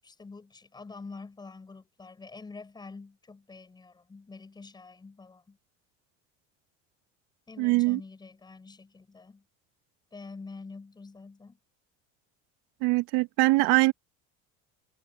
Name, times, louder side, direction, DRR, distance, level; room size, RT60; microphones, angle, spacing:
voice 1, 0.0-5.6 7.5-9.5 10.1-11.6, left 4 dB, 15° left, 7.2 m, -46 dB
voice 2, 7.6-8.0 12.8-13.9, right 23 dB, 85° right, 1.4 m, -22 dB
cardioid pair, 155°, 30 cm